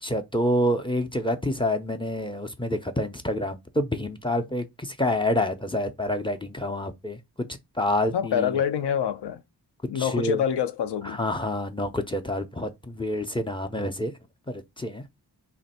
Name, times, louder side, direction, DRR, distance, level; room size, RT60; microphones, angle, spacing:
voice 1, 0.0-7.2 7.8-8.5 9.9-10.4 11.1-14.1 14.5-15.0, left 1 dB, 15° left, 0.4 m, -27 dB
voice 2, 8.1-9.4 9.9-11.2, left 8 dB, 85° left, 0.5 m, -26 dB
3.0 x 2.5 x 4.1 m
wide cardioid pair, 95°, 40 cm